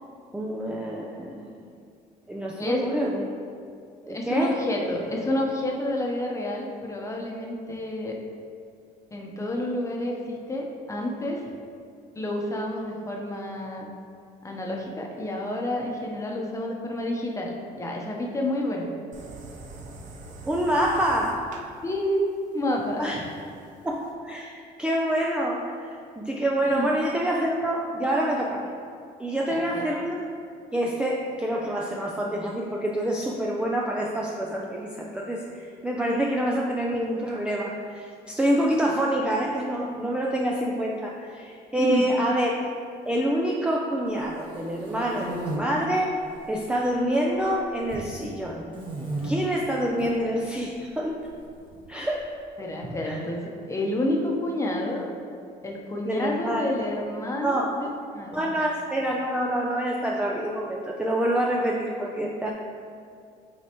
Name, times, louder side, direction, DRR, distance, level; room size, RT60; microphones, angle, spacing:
voice 1, 0.3-1.6 2.3-3.3 4.0-4.6 20.5-21.5 23.0-23.2 23.8-24.5 24.8-28.7 29.2-30.2 30.7-42.5 43.0-46.2 46.5-48.8 49.2-51.2 51.9-52.3 53.0-53.2 56.0-56.6 57.4-57.9 58.3-62.5, right 1 dB, 5° right, -2 dB, 0.4 m, -27 dB
voice 2, 4.1-8.2 9.1-11.4 12.2-13.9 14.4-18.9 21.8-22.2 22.5-23.2 26.7-26.9 29.5-29.8 41.8-42.1 52.6-55.1 55.6-57.9 58.1-58.5, left 1 dB, 15° left, -1 dB, 0.9 m, -29 dB
sound 1, 19.1-24.1, right 2 dB, 50° right, 0.8 m, -44 dB
sound 2, 44.2-45.6 46.2-46.8 47.1-48.1 48.7-49.3 49.9-50.1 51.2-52.2, right 2 dB, 30° right, 1.4 m, -35 dB
8.1 x 4.0 x 3.0 m, 2.4 s
cardioid pair, 110°, 17 cm